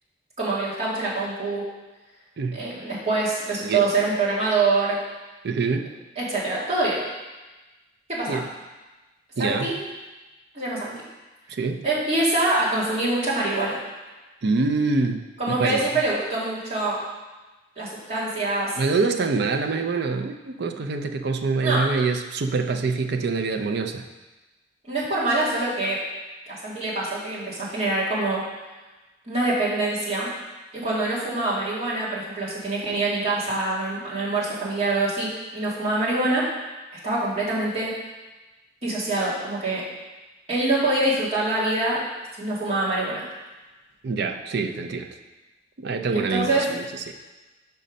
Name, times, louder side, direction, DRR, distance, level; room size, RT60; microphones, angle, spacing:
voice 1, 0.4-1.6 2.5-5.0 6.2-7.0 8.1-8.4 9.4-9.7 10.5-10.9 11.8-13.8 15.4-17.0 17.8-18.7 21.6-21.8 24.9-26.0 26.5-28.4 29.3-30.3 30.7-36.5 37.0-37.9 38.8-39.8 40.5-42.0 42.4-43.2 46.1-46.7, right 2 dB, 35° right, -8 dB, 2.1 m, -25 dB
voice 2, 5.4-5.9 8.3-8.4 9.4-9.8 11.5-11.8 14.4-15.2 15.6-15.8 18.8-24.0 44.0-45.1 45.8-46.8, right 4 dB, 60° right, 6 dB, 0.5 m, -25 dB
5.4 x 5.3 x 5.1 m, 1.2 s
head